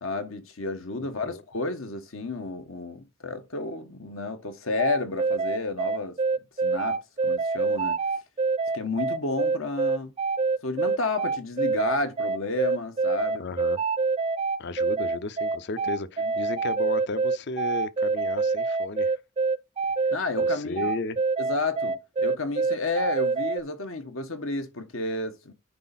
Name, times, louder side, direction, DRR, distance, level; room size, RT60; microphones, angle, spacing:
voice 1, 0.0-6.1 6.6-8.0 8.7-10.1 10.6-13.4 20.1-20.9 21.4-25.5, left 3 dB, 85° left, 1.4 m, -31 dB
voice 2, 1.0-1.4 13.4-13.8 14.6-19.2 20.4-21.2, left 3 dB, 60° left, 0.6 m, -34 dB
sound 1, 4.8-23.6, right 4 dB, 30° right, 0.4 m, -26 dB
9.7 x 4.0 x 4.2 m
head